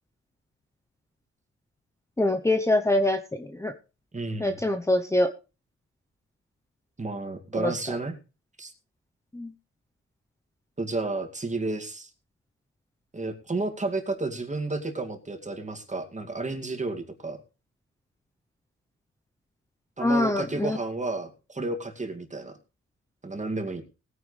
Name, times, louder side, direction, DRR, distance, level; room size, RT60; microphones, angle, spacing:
voice 1, 2.2-3.7 4.4-5.3 7.6-8.0 9.3-9.5 20.0-20.8, left 1 dB, 10° left, 6 dB, 0.8 m, -24 dB
voice 2, 4.1-4.6 7.0-8.1 8.6-8.7 10.8-12.1 13.1-17.4 20.0-22.5 23.2-23.8, right 2 dB, 25° right, 4 dB, 2.4 m, -32 dB
19.5 x 9.4 x 3.3 m, 0.32 s
wide cardioid pair, 115°, 29 cm